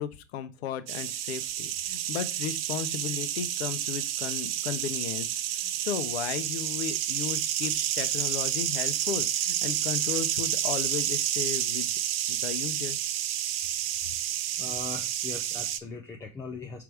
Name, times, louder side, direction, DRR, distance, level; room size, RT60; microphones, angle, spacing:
voice 1, 0.0-11.9 12.3-13.0, left 8 dB, 55° left, 11 dB, 1.0 m, -35 dB
sound 1, 0.9-15.8, right 11 dB, 50° right, 0.6 m, -30 dB
voice 2, 14.6-16.8, left 4 dB, 5° left, 2 dB, 0.6 m, -40 dB
5.9 x 3.4 x 4.9 m, 0.29 s
hypercardioid pair, 115°, 38 cm